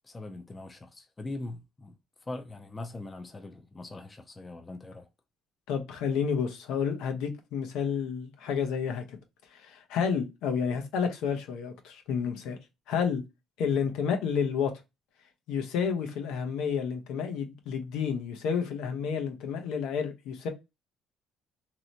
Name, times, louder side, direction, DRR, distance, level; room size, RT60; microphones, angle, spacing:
voice 1, 0.0-1.9 2.2-5.1, left 2 dB, 15° left, 0.4 m, -41 dB
voice 2, 5.7-9.2 9.5-12.6 12.9-13.2 13.6-14.7 15.5-20.5, left 6 dB, 90° left, 0.8 m, -30 dB
3.2 x 2.8 x 2.6 m
cardioid pair, 175°, 0 cm